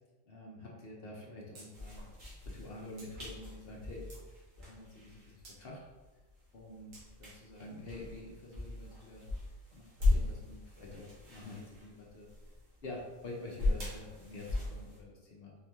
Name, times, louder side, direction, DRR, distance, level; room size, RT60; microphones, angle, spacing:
voice 1, 0.3-2.1 2.4-4.1 4.6-5.8 6.5-6.9 7.2-9.3 9.7-12.3 12.8-15.6, left 2 dB, 55° left, -2 dB, 0.9 m, -47 dB
sound 1, 1.5-1.7 2.0-2.1 3.0-3.1 3.7-4.3 5.4-5.6 6.9-7.1, right 2 dB, 55° right, 1.1 m, -53 dB
sound 2, 1.7-15.0, left 2 dB, 90° right, 1.8 m, -38 dB
4.4 x 2.9 x 3.5 m, 1.2 s
omnidirectional pair, 1.3 m